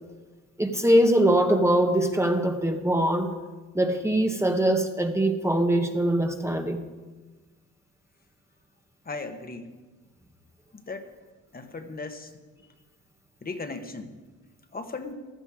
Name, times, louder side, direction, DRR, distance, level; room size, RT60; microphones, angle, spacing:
voice 1, 0.6-3.3 3.7-6.8, right 1 dB, 10° right, 4 dB, 1.1 m, -22 dB
voice 2, 9.0-9.7 10.7-11.1 11.5-12.4 13.4-14.2 14.7-15.1, left 3 dB, 30° left, 6 dB, 1.3 m, -37 dB
15.5 x 11.5 x 4.9 m, 1.3 s
cardioid pair, 90°, 30 cm